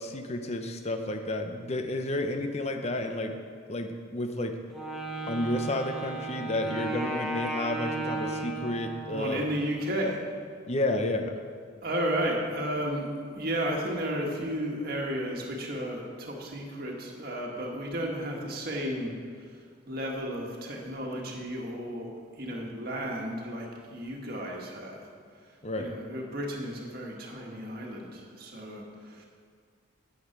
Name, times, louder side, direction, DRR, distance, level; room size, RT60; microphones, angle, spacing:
voice 1, 0.0-3.3 3.7-4.6 5.3-9.5 10.7-11.3 25.6-25.9, left 1 dB, 30° left, 6 dB, 0.7 m, -31 dB
Wind instrument woodwind instrument, 4.7-9.6, right 2 dB, ahead, 1.1 m, -35 dB
voice 2, 9.1-10.2 11.8-19.1 19.9-25.0 25.8-29.2, equal, 50° right, -1 dB, 1.7 m, -33 dB
9.7 x 8.1 x 5.9 m, 2.1 s
head